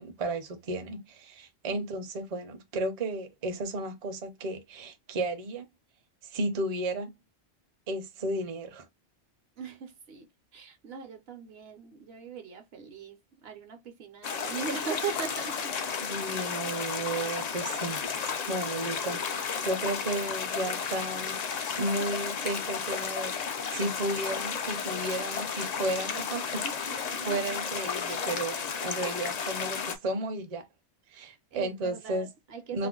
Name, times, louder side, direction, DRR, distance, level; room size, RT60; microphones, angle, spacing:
voice 1, 0.0-5.7 6.3-7.1 7.9-8.9 16.0-26.6 26.9-30.6 31.1-32.3 32.7-32.9, right 2 dB, 45° right, 0.5 m, -33 dB
voice 2, 1.7-2.0 9.6-15.8 26.6-27.5 31.5-32.9, right 6 dB, 65° right, 0.9 m, -40 dB
sound 1, 14.2-30.0, left 6 dB, 60° left, 0.4 m, -33 dB
2.4 x 2.0 x 3.6 m
omnidirectional pair, 1.1 m